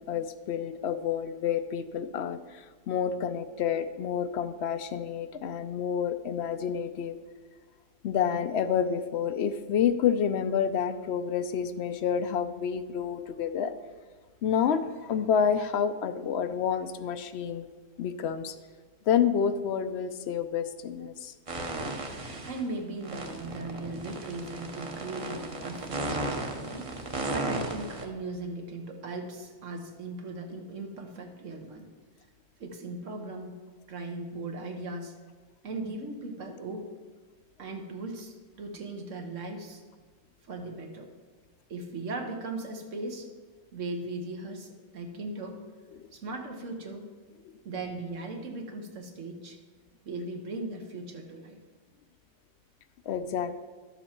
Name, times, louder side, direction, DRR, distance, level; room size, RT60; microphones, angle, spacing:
voice 1, 0.1-7.2 8.0-13.7 14.4-17.7 18.0-18.6 19.1-21.3 45.9-46.1 47.4-47.5 53.1-53.5, left 8 dB, 65° left, 11 dB, 0.8 m, -29 dB
sound 1, 21.5-22.6 23.0-28.1, right 2 dB, 30° right, 0.8 m, -35 dB
voice 2, 22.4-31.9 32.6-33.6 33.9-35.1 35.6-36.9 37.6-39.8 40.5-41.1 41.7-43.3 43.7-45.6 46.1-47.1 47.6-49.6 50.0-51.6, right 2 dB, 85° right, 3 dB, 1.5 m, -38 dB
11.5 x 6.9 x 4.4 m, 1.5 s
omnidirectional pair, 1.3 m